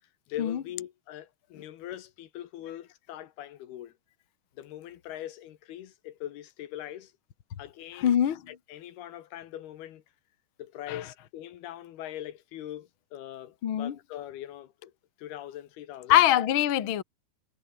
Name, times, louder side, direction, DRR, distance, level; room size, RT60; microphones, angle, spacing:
voice 1, 0.3-3.9 4.6-7.1 7.6-8.2 8.5-10.0 10.6-14.9 15.2-16.2, left 12 dB, 80° left, 3.5 m, -41 dB
voice 2, 8.0-8.4 10.9-11.0 13.6-13.9 16.1-17.0, left 11 dB, 60° left, 1.4 m, -23 dB
omnidirectional pair, 4.5 m